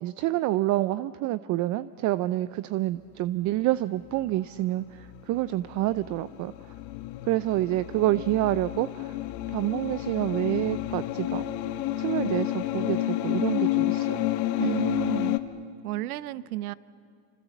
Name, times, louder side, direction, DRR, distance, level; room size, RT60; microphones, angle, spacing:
voice 1, 0.0-6.5 7.2-9.2 9.5-11.4 12.0-14.3, right 16 dB, 45° right, 15 dB, 0.6 m, -28 dB
sound 1, 5.0-15.4, left 15 dB, 60° left, 1.4 m, -30 dB
voice 2, 14.6-15.4 15.8-16.7, right 17 dB, 90° right, 18 dB, 0.8 m, -31 dB
28.5 x 26.0 x 7.1 m, 2.7 s
supercardioid pair, 115°, 43 cm